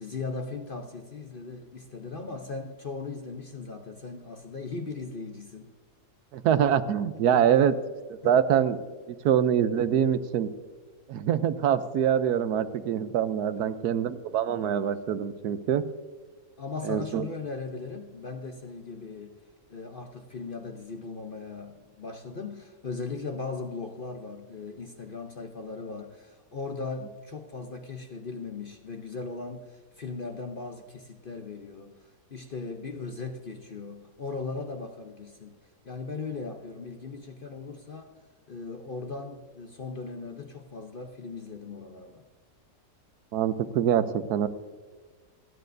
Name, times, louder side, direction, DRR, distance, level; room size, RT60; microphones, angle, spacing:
voice 1, 0.0-5.7 7.2-7.5 8.2-8.3 13.6-13.8 16.6-19.4 19.7-31.9 32.3-35.6 35.8-38.1 38.5-42.2, left 4 dB, 45° left, 4 dB, 0.8 m, -38 dB
voice 2, 6.3-7.7 8.1-8.8 9.1-10.5 11.1-15.8 16.8-17.2 43.3-44.5, right 9 dB, 75° right, 13 dB, 1.2 m, -24 dB
27.0 x 9.8 x 2.6 m, 1.4 s
omnidirectional pair, 1.7 m